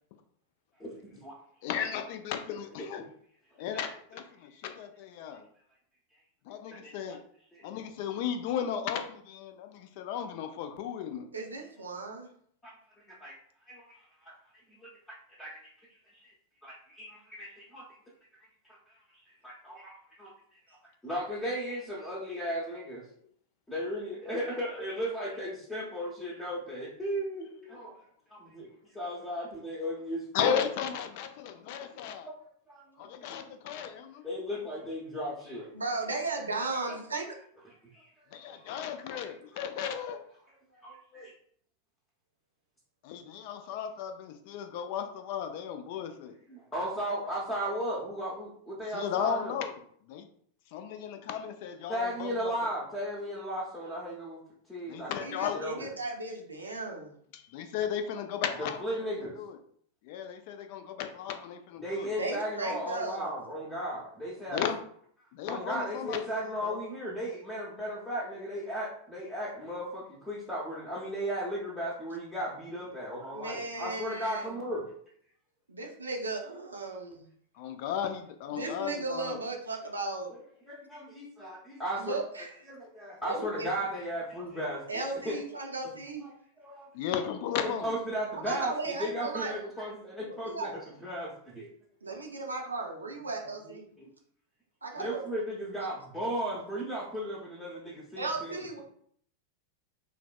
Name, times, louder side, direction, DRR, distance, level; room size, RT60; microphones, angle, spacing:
voice 1, 0.8-1.3 3.0-3.1 6.8-7.2 7.5-7.6 12.6-12.7 13.2-13.3 13.7-14.3 14.8-16.3 16.6-17.9 18.4-18.5 18.9-23.0 23.7-27.9 28.3-30.6 31.9-32.4 32.7-33.9 34.2-35.7 36.7-37.0 37.7-38.1 38.3-38.8 39.2-39.7 40.0-40.1 40.5-41.3 46.5-49.5 51.9-54.4 54.7-55.1 55.5-55.9 58.6-59.4 61.8-64.6 65.5-74.9 80.3-82.2 82.7-85.4 86.2-86.3 86.6-86.9 87.6-91.7 93.7-94.1 95.0-98.8, equal, 10° left, -6 dB, 0.7 m, -36 dB
voice 2, 1.6-3.0 3.6-5.4 6.5-7.2 7.6-11.3 30.3-32.3 33.0-34.2 38.3-40.2 43.0-46.3 48.9-49.7 50.1-50.3 50.7-52.3 54.9-55.6 57.3-58.8 59.4-59.5 60.0-62.1 64.5-64.8 65.3-66.2 66.6-66.8 77.6-79.4 86.9-87.8, left 8 dB, 50° left, 7 dB, 0.3 m, -35 dB
voice 3, 11.3-12.3 35.7-37.3 55.2-57.1 62.2-63.3 73.3-74.5 75.7-77.3 78.5-80.3 82.0-82.5 83.2-84.0 84.9-86.2 88.3-89.5 90.4-90.8 92.0-93.9 94.8-95.2 98.2-98.8, right 3 dB, 75° right, 1 dB, 0.5 m, -36 dB
3.2 x 2.1 x 2.3 m, 0.62 s
figure-of-eight pair, 90°, 0 cm